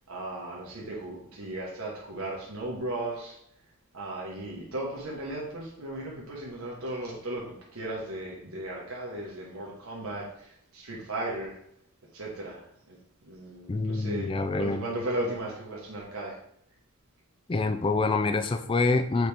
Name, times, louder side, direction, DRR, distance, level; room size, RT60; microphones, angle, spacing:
voice 1, 0.1-3.4 3.9-11.6 12.1-13.0 13.2-16.4, right 1 dB, 80° right, -4 dB, 1.3 m, -36 dB
voice 2, 13.7-14.8 17.5-19.3, left 3 dB, 25° left, 9 dB, 0.3 m, -26 dB
6.6 x 4.2 x 3.4 m, 0.71 s
head